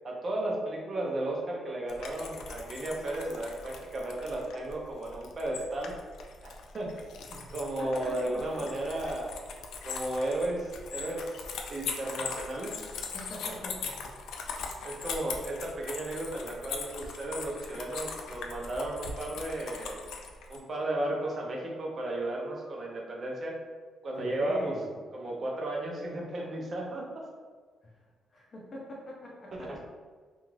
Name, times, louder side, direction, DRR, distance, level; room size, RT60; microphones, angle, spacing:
voice 1, 0.0-5.9 6.4-6.9 7.3-9.3 9.8-11.2 11.7-12.7 14.8-20.0 20.5-23.5 24.0-24.7 25.1-27.3 29.7-29.8, right 1 dB, 35° right, -2 dB, 0.5 m, -34 dB
sound 1, 1.9-20.6, left 5 dB, 80° left, 0.3 m, -41 dB
voice 2, 7.8-8.4 13.1-13.9 24.2-24.9 28.3-29.7, equal, 30° left, -3 dB, 0.6 m, -41 dB
2.4 x 2.3 x 3.1 m, 1.5 s
cardioid pair, 155°, 0 cm